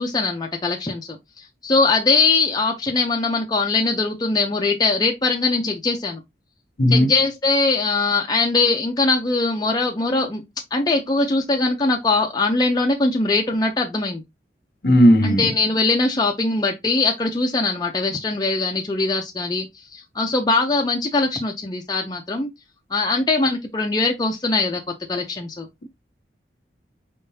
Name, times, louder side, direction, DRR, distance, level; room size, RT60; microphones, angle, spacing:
voice 1, 0.0-6.2 6.9-10.4 10.7-14.2 15.2-22.5 22.9-25.7, left 3 dB, 20° left, 0.5 m, -21 dB
voice 2, 6.8-7.1 14.8-15.5, equal, 55° left, 0.7 m, -15 dB
4.5 x 3.6 x 2.7 m
head